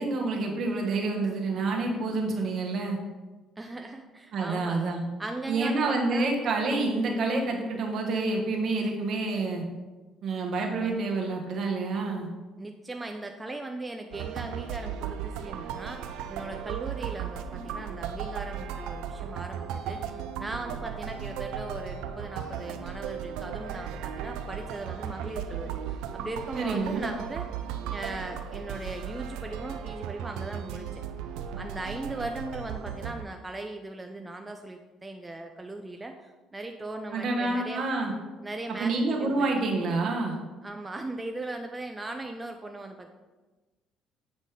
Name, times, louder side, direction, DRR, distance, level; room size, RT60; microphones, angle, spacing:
voice 1, 0.0-3.0 4.3-5.0 5.5-9.7 10.2-12.3 26.5-27.0 37.1-38.1 38.8-40.4, right 3 dB, 55° right, 1 dB, 1.7 m, -28 dB
voice 2, 1.7-2.2 3.6-4.8 5.2-6.3 12.6-27.5 27.9-31.0 31.6-37.8 38.4-39.5 40.6-43.1, right 2 dB, 15° right, 4 dB, 0.6 m, -38 dB
sound 1, 14.1-33.2, right 8 dB, 85° right, 0.5 m, -36 dB
8.1 x 4.1 x 5.2 m, 1.2 s
supercardioid pair, 80°, 0 cm